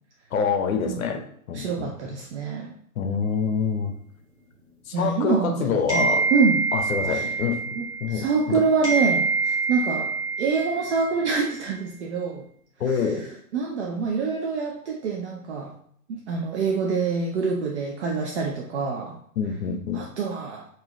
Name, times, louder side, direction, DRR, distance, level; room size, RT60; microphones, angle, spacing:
voice 1, 0.3-1.2 1.5-1.9 3.0-3.9 4.9-6.3 6.7-8.7 12.8-13.3 19.4-20.1, left 6 dB, 65° left, 7 dB, 0.7 m, -26 dB
voice 2, 1.5-2.7 4.9-6.6 7.0-7.3 7.8-10.1 10.4-12.5 12.9-13.3 13.5-15.7 16.1-19.2 19.7-20.7, right 5 dB, 50° right, 1 dB, 0.5 m, -26 dB
sound 1, 5.9-8.5 8.8-11.4, right 4 dB, 10° right, 0.7 m, -26 dB
3.8 x 2.6 x 3.0 m, 0.64 s
hypercardioid pair, 140°, 44 cm